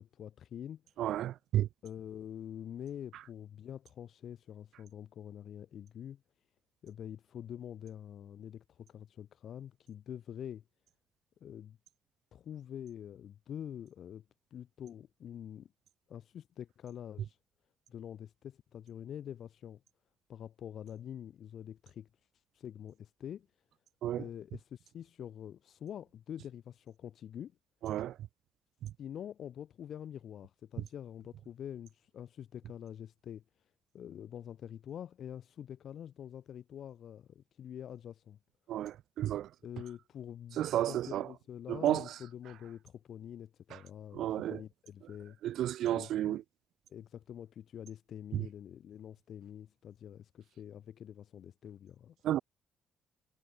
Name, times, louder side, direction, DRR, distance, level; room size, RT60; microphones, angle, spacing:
voice 1, 0.0-0.8 1.8-6.2 6.8-10.6 11.4-11.8 12.3-14.3 14.5-15.7 16.1-17.4 17.9-19.8 20.3-22.1 22.5-23.5 24.2-27.5 29.0-33.4 33.9-38.4 39.6-45.4 45.9-46.4 46.9-52.2, left 9 dB, 65° left, 0.5 m, -46 dB
voice 2, 1.0-1.7 24.0-24.3 27.8-28.2 28.8-28.9 38.7-39.5 40.6-41.3 41.7-42.1 43.7-43.8 44.1-44.6 45.4-46.4 48.3-48.5 52.2-52.4, right 12 dB, 80° right, 0.3 m, -32 dB
cardioid pair, 90°, 0 cm